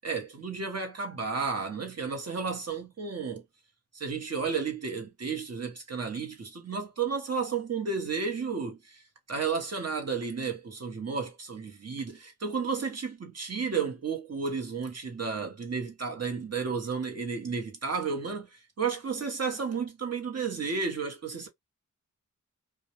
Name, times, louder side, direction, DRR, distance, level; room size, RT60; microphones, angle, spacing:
voice 1, 0.0-3.4 3.9-9.0 9.3-21.5, right 5 dB, 50° right, 0.9 m, -32 dB
2.3 x 2.1 x 2.8 m
wide cardioid pair, 65°, 32 cm